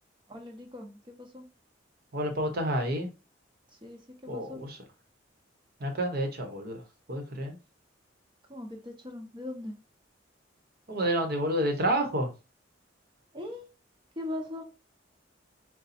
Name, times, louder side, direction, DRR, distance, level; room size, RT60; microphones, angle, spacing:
voice 1, 0.3-1.4 3.8-4.6 8.5-9.7 13.3-13.7 14.2-14.6, left 1 dB, 25° right, 0.9 m, -40 dB
voice 2, 2.1-3.1 4.3-4.8 5.8-6.8 7.1-7.6 10.9-12.3, right 1 dB, 55° right, 1.0 m, -29 dB
4.0 x 2.2 x 4.2 m
head